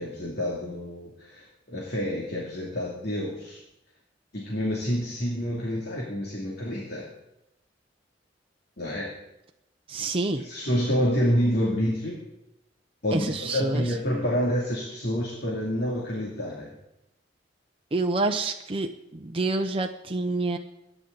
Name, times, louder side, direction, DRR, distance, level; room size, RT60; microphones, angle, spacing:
voice 1, 0.0-3.6 4.3-7.1 8.8-9.1 10.4-12.2 13.0-16.7, equal, 60° left, -3 dB, 2.7 m, -28 dB
voice 2, 9.9-10.4 13.1-13.9 17.9-20.6, right 2 dB, 30° right, 4 dB, 0.7 m, -28 dB
22.0 x 10.0 x 4.0 m, 0.87 s
head